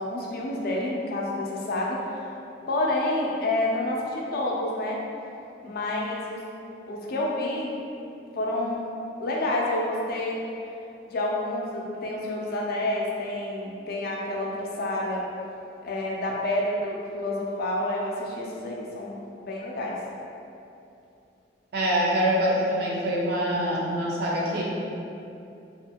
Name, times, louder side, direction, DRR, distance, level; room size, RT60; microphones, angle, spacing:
voice 1, 0.0-2.3 2.7-5.0 5.6-6.4 6.9-7.7 8.3-8.9 9.2-10.4 11.1-15.2 15.8-20.0, left 1 dB, 55° left, -3 dB, 0.4 m, -29 dB
voice 2, 21.7-24.6, equal, 60° right, -5 dB, 0.5 m, -25 dB
2.5 x 2.4 x 2.7 m, 2.7 s
head